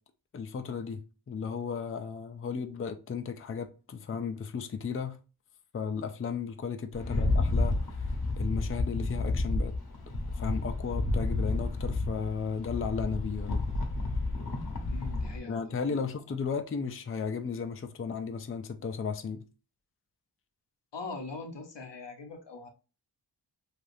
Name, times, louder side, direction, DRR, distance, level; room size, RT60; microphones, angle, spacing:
voice 1, 0.3-5.2 5.7-7.8 8.4-9.7 10.4-13.7 15.5-19.4, left 6 dB, 35° left, 0.4 m, -34 dB
Rattle, 6.9-15.4, left 2 dB, 60° left, 0.8 m, -30 dB
voice 2, 14.8-16.0 20.9-22.7, left 3 dB, 90° left, 0.8 m, -42 dB
3.3 x 2.4 x 2.6 m
wide cardioid pair, 60°, 41 cm